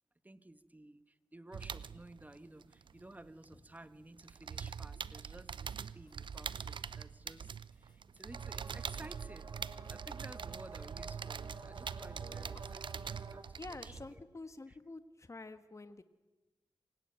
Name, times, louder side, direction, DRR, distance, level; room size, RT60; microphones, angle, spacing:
voice 1, 0.2-9.5 9.9-14.2, right 1 dB, 20° right, 12 dB, 1.5 m, -55 dB
sound 1, 1.5-3.8 4.0-14.2, right 7 dB, 75° right, 0.7 m, -44 dB
sound 2, 5.3-5.4 5.6-11.7 12.0-13.7, left 3 dB, 55° left, 3.9 m, -74 dB
sound 3, 8.3-13.4, right 3 dB, 55° right, 2.4 m, -51 dB
voice 2, 11.9-12.7 13.6-16.0, left 3 dB, 35° left, 10 dB, 1.3 m, -49 dB
26.0 x 17.0 x 9.4 m, 1.2 s
cardioid pair, 45°, 8 cm